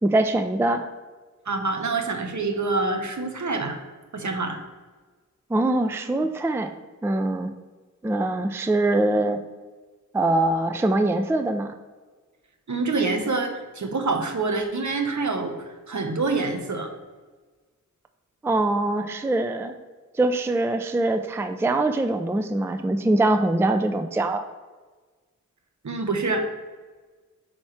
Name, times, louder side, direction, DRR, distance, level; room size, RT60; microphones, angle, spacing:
voice 1, 0.0-0.9 5.5-6.7 7.0-7.5 8.0-9.4 10.1-11.7 18.4-19.8 20.1-24.4, right 2 dB, 10° right, 7 dB, 0.3 m, -23 dB
voice 2, 1.5-3.8 4.1-4.6 12.7-16.9 25.8-26.5, right 3 dB, 65° right, 4 dB, 0.9 m, -26 dB
6.2 x 4.3 x 4.4 m, 1.4 s
wide cardioid pair, 80°, 32 cm